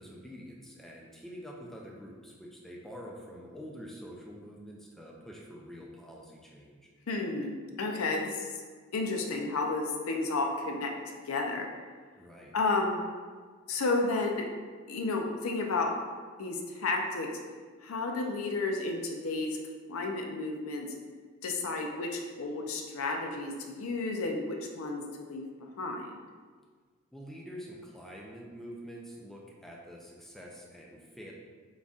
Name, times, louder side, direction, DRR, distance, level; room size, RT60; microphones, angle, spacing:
voice 1, 0.0-6.9 12.1-12.6 27.1-31.3, equal, ahead, -3 dB, 0.4 m, -46 dB
voice 2, 7.1-8.5 8.9-10.9 11.2-11.7 12.5-13.0 13.7-14.5 14.9-15.9 16.4-17.3 17.8-19.6 19.9-20.9 21.4-25.5 25.8-26.1, left 3 dB, 90° left, 2 dB, 0.5 m, -32 dB
3.9 x 3.7 x 2.4 m, 1.5 s
head